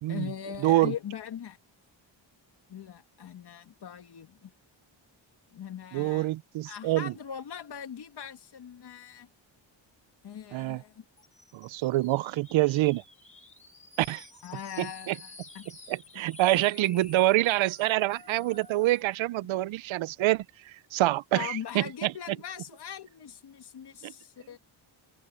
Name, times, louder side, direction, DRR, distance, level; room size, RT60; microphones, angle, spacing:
voice 1, 0.1-1.6 2.7-4.5 5.5-6.3 6.7-9.3 10.2-11.0 14.4-15.7 21.3-24.6, left 8 dB, 60° left, 2.3 m, -40 dB
voice 2, 0.6-0.9 5.9-7.1 10.5-10.8 11.5-13.0 14.0-14.3 14.8-15.2 15.9-20.4 20.9-22.1 24.0-24.1, right 16 dB, 80° right, 0.6 m, -26 dB
sound 1, 11.2-19.2, left 2 dB, 15° left, 3.9 m, -51 dB
open air
wide cardioid pair, 165°, 46 cm